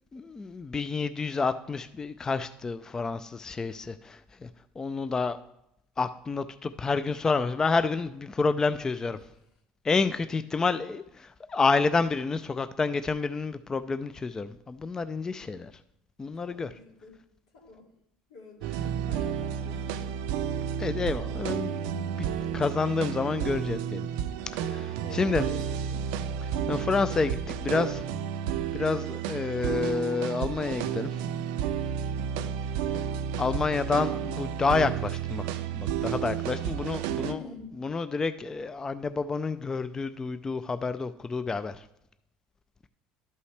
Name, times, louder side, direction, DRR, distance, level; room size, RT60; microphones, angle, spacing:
voice 1, 0.1-4.5 4.8-5.4 6.0-9.2 9.8-15.7 16.2-16.7 20.8-22.0 22.5-24.1 24.5-25.5 26.7-28.0 28.7-31.2 33.4-37.4 37.8-41.8, left 4 dB, 20° left, 0.3 m, -29 dB
voice 2, 16.4-17.2 17.5-17.9 18.3-20.2 21.9-22.6 24.3-24.5 25.0-26.0 37.1-37.8, left 4 dB, 90° left, 2.3 m, -48 dB
sound 1, 18.6-37.3, right 8 dB, 80° right, 0.5 m, -31 dB
11.5 x 5.5 x 3.3 m
supercardioid pair, 100°, 3 cm